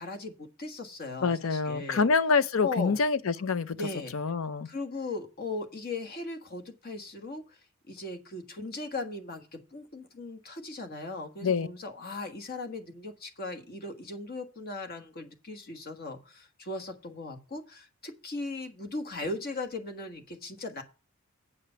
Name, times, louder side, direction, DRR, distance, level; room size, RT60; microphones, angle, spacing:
voice 1, 0.0-2.0 2.6-3.0 3.8-4.1 4.6-7.6 7.9-20.8, left 2 dB, 45° left, 1.4 m, -38 dB
voice 2, 1.2-3.8 4.1-4.7 11.4-11.7, left 4 dB, 70° left, 0.5 m, -26 dB
8.5 x 5.0 x 6.8 m
head